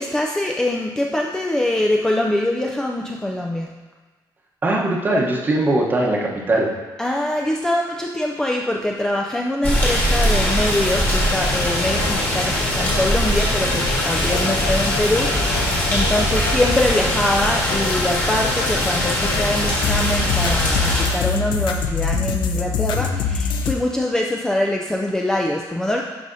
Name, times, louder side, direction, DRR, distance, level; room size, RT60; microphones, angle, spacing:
voice 1, 0.0-3.7 7.0-26.0, left 1 dB, 5° left, 0 dB, 0.3 m, -23 dB
voice 2, 4.6-6.7, right 2 dB, 25° right, -1 dB, 0.9 m, -20 dB
sound 1, 9.6-21.1, equal, 25° left, 1.7 m, -21 dB
sound 2, 10.1-23.7, left 5 dB, 90° left, 0.6 m, -27 dB
11.5 x 4.8 x 2.6 m, 1.3 s
cardioid pair, 175°, 8 cm